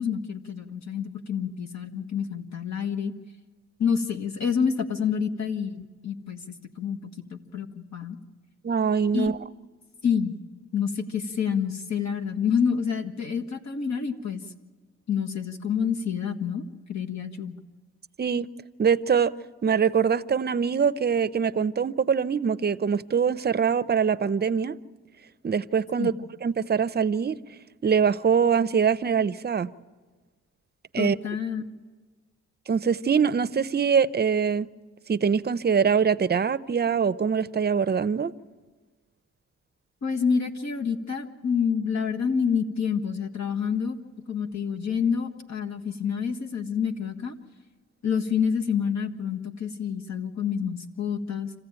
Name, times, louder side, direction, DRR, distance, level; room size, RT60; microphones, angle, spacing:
voice 1, 0.0-3.1 3.8-8.2 9.1-9.3 10.0-10.3 10.7-14.4 15.1-16.6 16.9-17.5 26.0-26.1 31.0-31.6 40.0-44.0 44.3-47.4 48.0-51.5, left 6 dB, 65° left, 4 dB, 1.7 m, -28 dB
voice 2, 8.6-9.4 18.2-18.5 18.8-19.3 19.6-24.8 25.4-26.1 26.4-27.4 27.8-29.7 30.9-31.2 32.7-34.7 35.1-38.3, right 6 dB, 35° right, 15 dB, 0.6 m, -23 dB
26.5 x 15.0 x 8.9 m, 1.4 s
cardioid pair, 90°, 30 cm